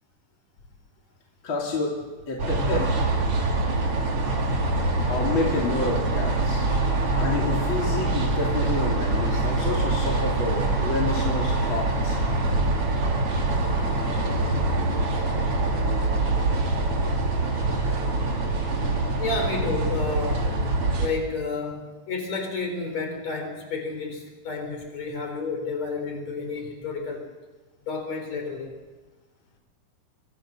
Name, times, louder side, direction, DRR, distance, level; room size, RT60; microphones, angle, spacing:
voice 1, 1.4-2.0 2.3-2.9 5.1-6.7 7.2-12.2, left 3 dB, 40° left, -2 dB, 3.4 m, -29 dB
sound 1, 2.4-21.1, right 2 dB, 45° right, 3.5 m, -24 dB
voice 2, 19.2-20.6 21.0-27.3 27.9-28.7, left 3 dB, 55° left, 4 dB, 5.0 m, -31 dB
25.0 x 23.0 x 6.3 m, 1.3 s
omnidirectional pair, 3.8 m